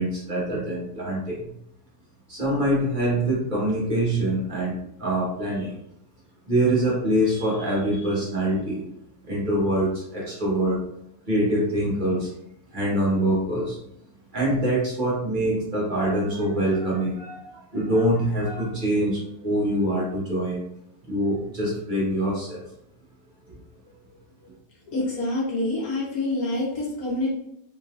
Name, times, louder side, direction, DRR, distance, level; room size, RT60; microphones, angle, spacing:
voice 1, 0.0-1.5 2.3-4.7 5.0-5.8 6.5-8.9 9.2-10.8 11.3-12.3 12.7-13.8 14.3-20.6 21.0-22.6 23.5-23.6, right 1 dB, 35° right, -6 dB, 1.4 m, -24 dB
voice 2, 24.9-27.3, left 2 dB, 85° left, -4 dB, 1.7 m, -26 dB
4.1 x 3.7 x 2.4 m, 0.78 s
omnidirectional pair, 1.5 m